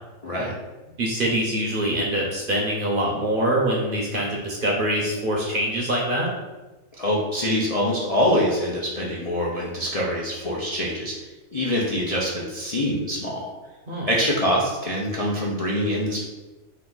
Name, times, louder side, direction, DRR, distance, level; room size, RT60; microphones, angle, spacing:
voice 1, 0.2-0.5 7.0-11.1 11.5-13.5 14.1-16.2, equal, 45° left, -5 dB, 0.5 m, -24 dB
voice 2, 1.0-6.3 13.9-14.1, right 1 dB, 50° right, -2 dB, 0.8 m, -24 dB
4.6 x 2.6 x 3.8 m, 1.1 s
omnidirectional pair, 1.4 m